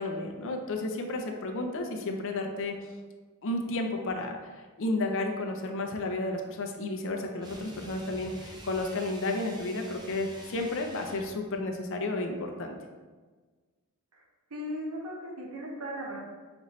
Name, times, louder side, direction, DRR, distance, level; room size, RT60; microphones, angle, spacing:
voice 1, 0.0-2.8 3.4-12.7, left 2 dB, 60° left, 3 dB, 0.5 m, -32 dB
sound 1, 7.4-11.4, right 1 dB, 20° right, 0.5 m, -47 dB
voice 2, 14.5-16.2, equal, 85° right, -2 dB, 0.9 m, -37 dB
5.3 x 2.5 x 3.1 m, 1.4 s
head